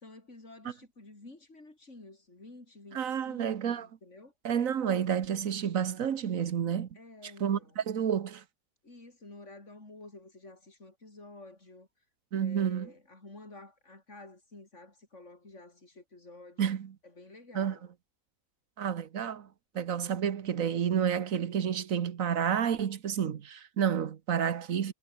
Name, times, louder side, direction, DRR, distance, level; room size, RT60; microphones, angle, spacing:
voice 1, 0.0-4.3 6.9-7.8 8.8-11.9 12.3-16.8 17.0-17.9, left 2 dB, 50° left, 5.4 m, -51 dB
voice 2, 2.9-3.9 4.4-6.9 7.4-8.4 12.3-12.9 16.6-16.9 17.5-17.7 18.8-19.5 19.7-24.9, right 8 dB, 65° right, 1.5 m, -30 dB
omnidirectional pair, 1.6 m